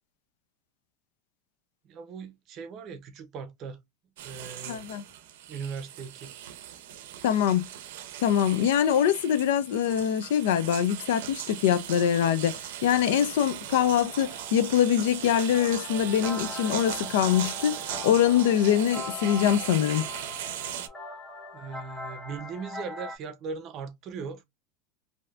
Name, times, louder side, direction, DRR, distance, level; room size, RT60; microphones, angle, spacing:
voice 1, 1.8-3.8 4.2-4.9 5.5-6.3 21.5-24.4, right 5 dB, 35° right, 0.6 m, -39 dB
sound 1, 4.2-20.9, right 11 dB, 90° right, 0.5 m, -38 dB
voice 2, 4.7-5.0 7.2-7.7 8.2-17.8 18.0-20.0, left 9 dB, 85° left, 0.5 m, -24 dB
sound 2, 13.7-23.2, left 2 dB, 10° left, 1.1 m, -42 dB
3.2 x 2.6 x 2.4 m
supercardioid pair, 160°, 0 cm